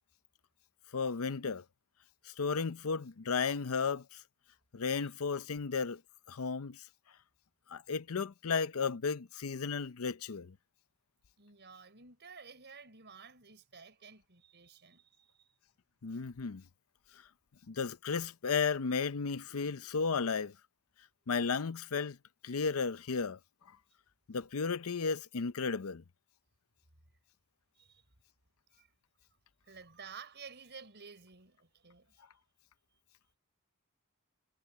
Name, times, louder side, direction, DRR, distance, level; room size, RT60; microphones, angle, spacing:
voice 1, 0.9-1.6 2.2-4.2 4.7-6.0 6.3-6.8 7.7-10.5 16.0-16.6 17.7-20.5 21.3-22.2 22.4-23.4 24.3-26.0, left 5 dB, 90° left, 0.6 m, -34 dB
voice 2, 11.4-15.5 27.7-28.1 28.7-28.9 29.6-32.3, right 5 dB, 55° right, 5.5 m, -53 dB
head